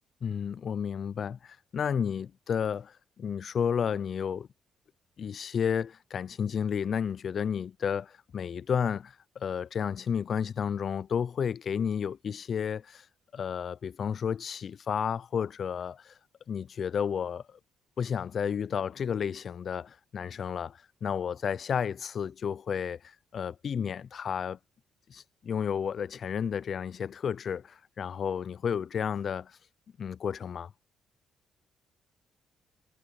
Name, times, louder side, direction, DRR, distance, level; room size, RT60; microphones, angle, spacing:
voice 1, 0.2-4.5 5.2-13.1 13.3-16.1 16.5-17.6 18.0-24.6 25.1-29.6 30.0-30.7, left 7 dB, 55° left, 0.5 m, -32 dB
cardioid pair, 90°, 0 cm